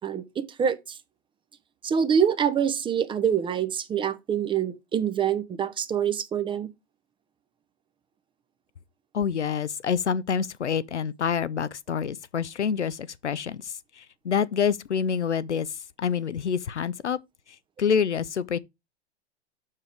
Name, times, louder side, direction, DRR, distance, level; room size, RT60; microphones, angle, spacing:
voice 1, 0.0-1.0 1.8-6.7, right 8 dB, 15° right, 0.7 m, -25 dB
voice 2, 9.1-15.7 16.0-17.2 17.8-18.6, left 7 dB, 85° left, 0.7 m, -27 dB
7.4 x 6.3 x 5.0 m
hypercardioid pair, 110°, 34 cm